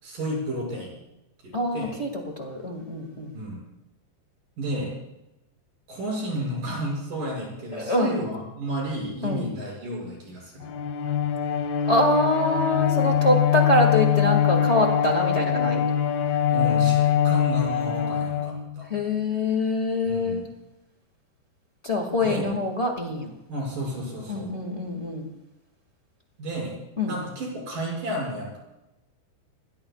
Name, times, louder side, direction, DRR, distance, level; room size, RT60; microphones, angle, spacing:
voice 1, 0.0-1.0 1.4-1.9 3.3-3.6 4.6-4.9 5.9-10.7 16.5-18.9 20.1-20.5 22.2-22.5 23.5-24.5 26.4-26.8 27.1-28.6, right 1 dB, 50° right, -1 dB, 8.0 m, -32 dB
voice 2, 1.5-3.3 7.7-8.2 9.2-9.5 11.9-15.8 18.9-20.4 21.8-23.3 24.3-25.3 27.0-27.1, left 1 dB, 45° left, 2 dB, 0.9 m, -25 dB
Bowed string instrument, 10.6-19.0, left 9 dB, 70° left, 3.0 m, -23 dB
27.5 x 20.5 x 2.4 m, 0.93 s
omnidirectional pair, 4.9 m